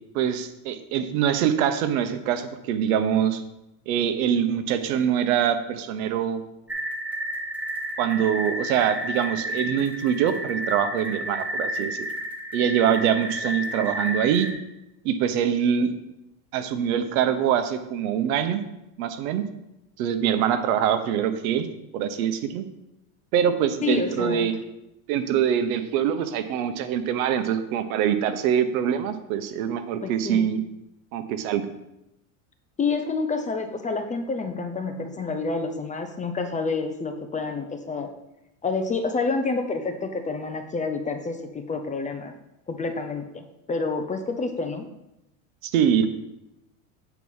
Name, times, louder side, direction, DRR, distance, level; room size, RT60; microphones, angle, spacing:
voice 1, 0.1-3.4 3.9-6.4 8.0-12.1 12.5-14.5 15.0-15.9 16.5-18.6 19.0-19.4 20.0-21.7 21.9-22.6 23.3-24.5 25.1-30.6 31.1-31.6 45.6-46.1, right 9 dB, 75° right, 10 dB, 1.0 m, -24 dB
sound 1, 6.7-14.5, equal, 5° right, 1.1 m, -31 dB
voice 2, 23.8-24.5 30.0-30.5 32.8-38.1 38.6-42.3 42.7-44.9, left 4 dB, 15° left, 6 dB, 0.6 m, -28 dB
8.3 x 4.6 x 5.6 m, 0.89 s
supercardioid pair, 130°, 43 cm